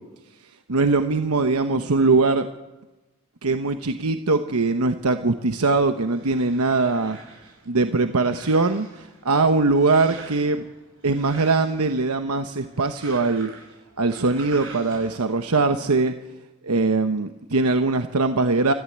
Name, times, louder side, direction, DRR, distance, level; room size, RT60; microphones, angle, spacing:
voice 1, 0.7-2.5 3.4-7.2 7.7-10.6 11.0-13.5 14.0-16.1 16.6-18.7, right 3 dB, 80° right, 8 dB, 1.0 m, -21 dB
sound 1, 5.8-15.4, right 3 dB, 60° right, 7.4 m, -46 dB
29.5 x 14.5 x 8.7 m, 1.1 s
head